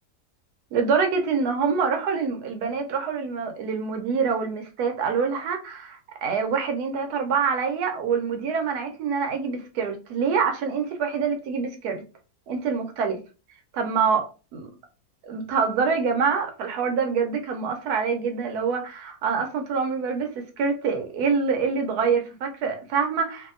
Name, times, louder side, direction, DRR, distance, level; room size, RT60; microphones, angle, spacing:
voice 1, 0.7-12.0 12.5-13.2 13.7-14.3 14.5-14.7 15.2-20.3 20.6-23.5, right 5 dB, 75° right, 1.2 m, -25 dB
2.7 x 2.6 x 3.7 m
omnidirectional pair, 1.7 m